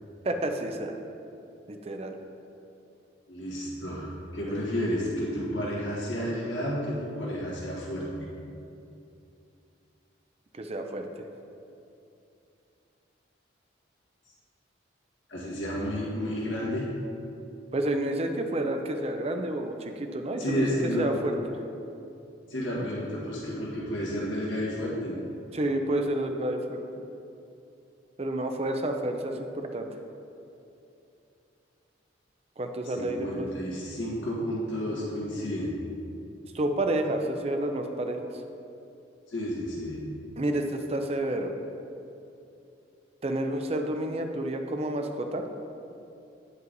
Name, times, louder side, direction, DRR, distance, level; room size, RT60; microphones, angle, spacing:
voice 1, 0.2-0.9 1.7-2.2 4.4-4.7 10.5-11.3 17.7-21.4 22.7-22.9 25.5-26.8 28.2-29.9 32.6-33.5 36.5-38.3 40.4-41.5 43.2-45.4, right 1 dB, 35° right, 5 dB, 0.5 m, -30 dB
voice 2, 3.3-8.3 15.3-16.9 20.4-21.2 22.5-25.2 32.9-35.7 39.3-40.1, equal, 85° left, -6 dB, 1.8 m, -31 dB
9.2 x 5.4 x 4.0 m, 2.7 s
head